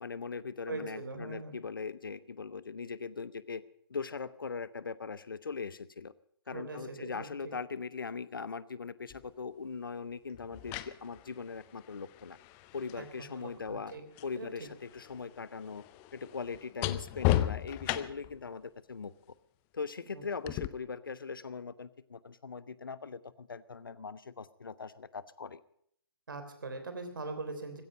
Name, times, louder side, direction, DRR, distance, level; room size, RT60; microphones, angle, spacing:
voice 1, 0.0-3.6 3.9-6.1 6.5-12.4 12.7-13.9 14.2-15.8 16.1-19.1 19.7-25.6, left 5 dB, 60° left, 17 dB, 0.9 m, -40 dB
voice 2, 0.7-1.6 6.5-7.3 13.0-14.0 14.3-14.5 20.1-20.6 26.3-27.8, right 3 dB, 60° right, 8 dB, 3.4 m, -41 dB
sound 1, 9.1-9.3 10.3-14.4 14.7-18.4 20.5-20.7, left 14 dB, 15° left, 0.5 m, -35 dB
16.0 x 15.0 x 5.3 m, 0.68 s
figure-of-eight pair, 135°, 13 cm